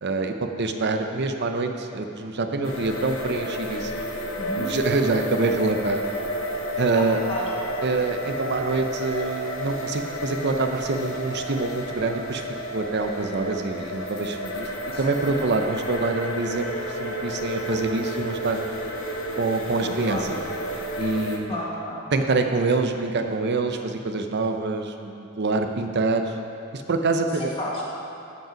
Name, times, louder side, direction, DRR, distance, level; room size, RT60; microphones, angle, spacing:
voice 1, 0.0-4.0 4.5-6.0 6.8-7.2 7.8-12.4 12.7-14.7 15.0-16.7 17.0-18.6 19.4-20.4 21.0-21.6 22.1-26.3 26.7-27.5, right 3 dB, 55° right, 6 dB, 0.7 m, -25 dB
sound 1, 2.6-21.4, equal, 65° left, 1.1 m, -31 dB
voice 2, 4.4-4.7 6.9-7.4 14.9-15.4 19.8-20.2 21.5-22.0 27.6-27.8, equal, 25° left, -5 dB, 1.9 m, -32 dB
13.5 x 5.4 x 5.1 m, 2.8 s
head